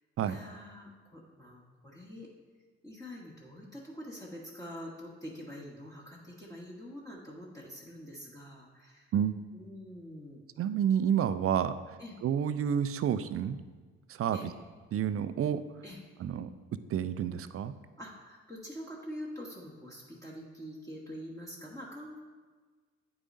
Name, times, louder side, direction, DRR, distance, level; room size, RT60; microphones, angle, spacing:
voice 1, 0.2-2.3 2.8-9.1 9.5-10.4 12.0-12.2 14.3-14.5 15.8-16.0 18.0-22.2, equal, 10° left, -5 dB, 1.2 m, -45 dB
voice 2, 10.6-11.7 12.2-13.6 14.1-14.4 14.9-15.6 16.2-16.5 16.9-17.7, right 9 dB, 40° right, 12 dB, 0.4 m, -29 dB
8.8 x 4.8 x 2.6 m, 1.4 s
hypercardioid pair, 50°, 36 cm